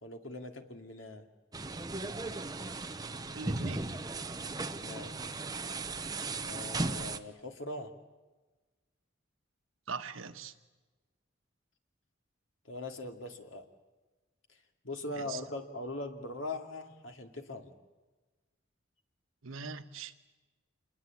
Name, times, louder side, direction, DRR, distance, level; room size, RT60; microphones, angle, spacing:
voice 1, 0.0-1.3 4.8-5.5 6.4-7.9 12.6-13.7 14.8-17.7, left 2 dB, 75° left, 5 dB, 2.4 m, -41 dB
sound 1, 1.5-7.2, right 3 dB, 20° right, 0.8 m, -36 dB
voice 2, 3.3-3.8 9.9-10.5 15.1-15.4 19.4-20.1, right 5 dB, 85° right, 8 dB, 1.3 m, -41 dB
27.0 x 21.0 x 8.5 m, 1.2 s
head